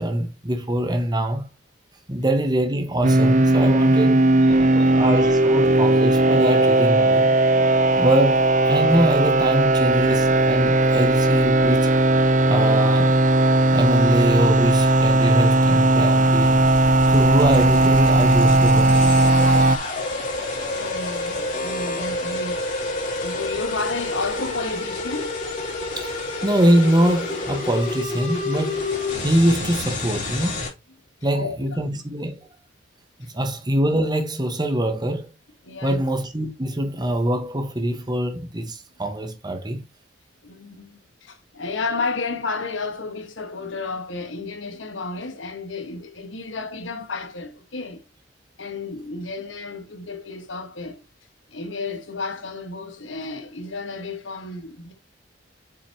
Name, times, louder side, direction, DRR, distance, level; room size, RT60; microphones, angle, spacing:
voice 1, 0.0-1.5 2.1-4.2 4.7-7.4 8.0-11.9 12.5-13.1 13.7-16.6 17.1-19.1 26.0-26.1 26.4-28.9 29.2-30.6 31.2-32.4 33.3-35.3 35.8-39.8, right 1 dB, 20° right, 1.5 m, -23 dB
sound 1, 3.0-19.8, right 2 dB, 40° right, 0.7 m, -17 dB
voice 2, 4.6-4.9 20.7-22.8 23.1-25.4 31.3-31.5 33.2-33.3 35.6-36.0 40.4-48.0 48.6-51.0 51.5-54.9, left 3 dB, 85° left, 1.7 m, -32 dB
sound 2, 16.4-30.7, left 2 dB, 45° left, 3.4 m, -29 dB
7.3 x 5.6 x 3.0 m
head